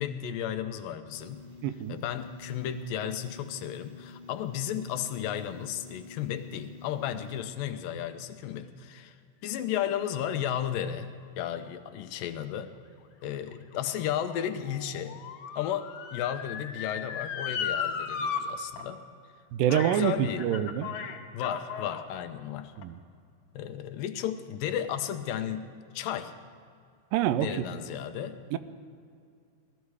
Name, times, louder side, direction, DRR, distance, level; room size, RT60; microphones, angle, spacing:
voice 1, 0.0-1.4 1.9-9.2 9.4-12.7 13.2-15.2 15.5-19.0 19.7-20.4 21.3-22.7 23.6-26.3 27.4-28.4, left 10 dB, 90° left, 9 dB, 2.5 m, -34 dB
sound 1, 1.1-7.4, left 3 dB, 35° right, 0.6 m, -49 dB
voice 2, 1.6-2.0 19.5-20.9 22.8-23.0 27.1-27.7 28.5-28.6, right 11 dB, 85° right, 12 dB, 2.3 m, -26 dB
Motor vehicle (road) / Siren, 13.2-18.4 18.8-18.9 19.7-20.0 20.4-22.0 22.8-22.9, left 7 dB, 70° left, 2.1 m, -36 dB
18.5 x 13.5 x 4.8 m, 2.3 s
omnidirectional pair, 3.9 m